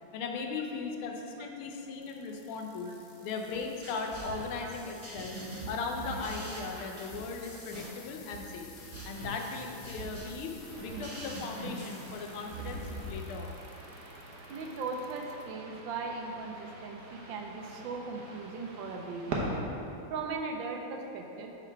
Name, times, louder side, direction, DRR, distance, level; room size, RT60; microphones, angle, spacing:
voice 1, 0.1-2.9 3.2-5.4 5.7-8.7 9.0-12.8 13.1-13.6, left 4 dB, 85° left, 3 dB, 1.6 m, -38 dB
sound 1, 2.0-15.4 16.0-16.4 17.1-17.2, left 6 dB, 65° left, 1.1 m, -55 dB
sound 2, 3.5-13.1, right 2 dB, 25° right, 0.6 m, -43 dB
sound 3, 10.6-19.6, right 2 dB, 55° right, 1.3 m, -43 dB
voice 2, 14.5-19.4 20.1-21.5, right 4 dB, 75° right, 2 dB, 1.3 m, -38 dB
5.9 x 5.9 x 4.5 m, 2.8 s
omnidirectional pair, 2.3 m